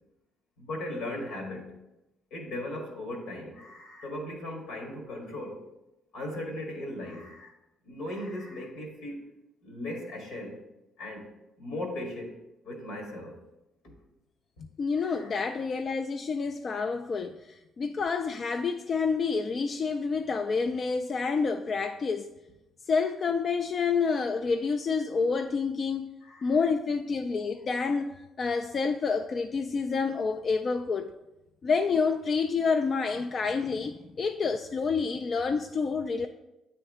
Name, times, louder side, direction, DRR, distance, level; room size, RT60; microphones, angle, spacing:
voice 1, 0.6-1.7 2.3-5.6 6.1-7.5 7.8-9.2 9.6-10.6 11.0-11.3 11.6-12.4 12.6-13.4 15.0-15.4 26.2-26.5, left 1 dB, 85° left, 1.7 m, -37 dB
voice 2, 14.6-22.3 22.9-26.1 26.4-31.1 31.6-36.3, left 5 dB, 45° left, 0.3 m, -28 dB
8.9 x 3.5 x 3.6 m
cardioid pair, 85°, 0 cm